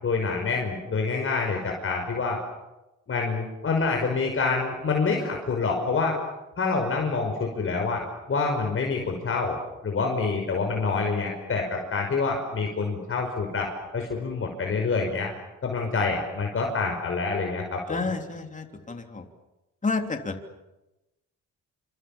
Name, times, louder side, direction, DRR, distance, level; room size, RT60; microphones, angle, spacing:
voice 1, 0.0-2.4 3.1-6.2 6.6-8.0 8.3-9.6 9.8-15.3 15.6-18.1, left 4 dB, 45° left, 2 dB, 5.6 m, -27 dB
voice 2, 17.9-19.2 19.8-20.3, left 4 dB, 25° left, 4 dB, 3.4 m, -30 dB
28.0 x 26.0 x 7.3 m, 1.0 s
cardioid pair, 90°, 30 cm